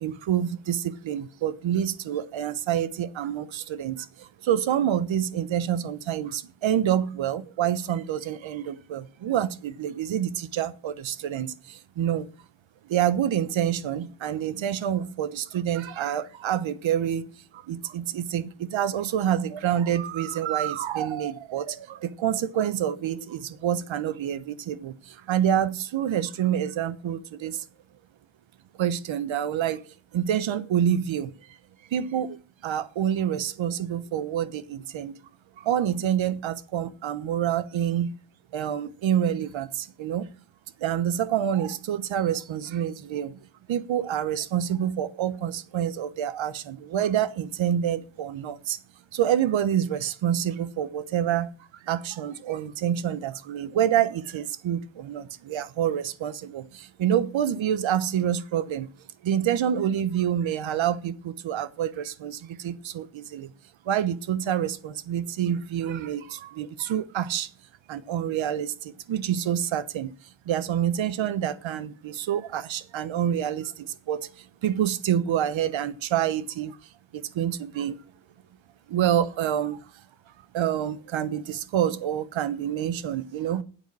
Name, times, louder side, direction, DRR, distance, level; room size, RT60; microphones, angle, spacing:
voice 1, 0.0-12.3 12.8-27.6 28.8-31.3 31.9-35.2 35.6-38.1 38.5-40.3 40.8-43.4 43.7-48.8 49.1-51.5 51.8-58.9 59.2-63.5 63.8-67.5 67.9-70.1 70.5-76.8 77.1-78.0 78.9-79.9 80.5-83.6, right 10 dB, 65° right, 1.0 m, -27 dB
9.3 x 8.2 x 6.0 m
cardioid pair, 120°, 49 cm